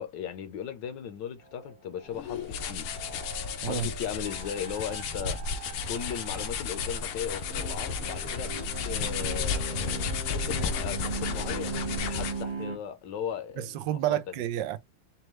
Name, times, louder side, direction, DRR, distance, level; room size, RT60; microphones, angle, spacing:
voice 1, 0.0-3.0 3.6-8.6 8.8-14.2, left 8 dB, 70° left, 1.2 m, -37 dB
sound 1, 1.5-12.8, right 4 dB, 55° right, 0.6 m, -40 dB
sound 2, 2.1-12.5, left 5 dB, 85° left, 1.6 m, -33 dB
voice 2, 13.6-14.8, right 12 dB, 75° right, 1.0 m, -30 dB
5.4 x 2.3 x 3.0 m
omnidirectional pair, 2.4 m